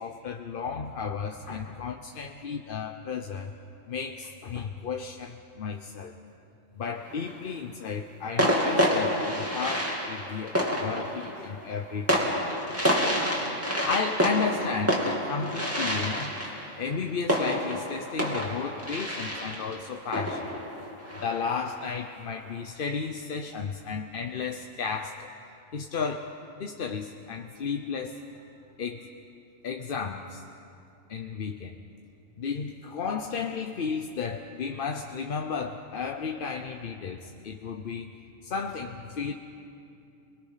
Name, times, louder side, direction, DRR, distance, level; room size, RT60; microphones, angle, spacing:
voice 1, 0.0-3.5 3.9-6.2 6.8-12.3 13.9-16.3 16.8-20.5 21.2-25.3 25.7-26.3 26.6-28.2 28.8-29.1 29.6-30.4 31.1-31.7 32.4-38.1 38.4-39.3, left 5 dB, 50° left, 4 dB, 0.9 m, -33 dB
sound 1, 6.9-7.5 8.4-21.8, equal, 10° right, 2.6 m, -28 dB
28.5 x 21.0 x 5.7 m, 2.7 s
omnidirectional pair, 1.4 m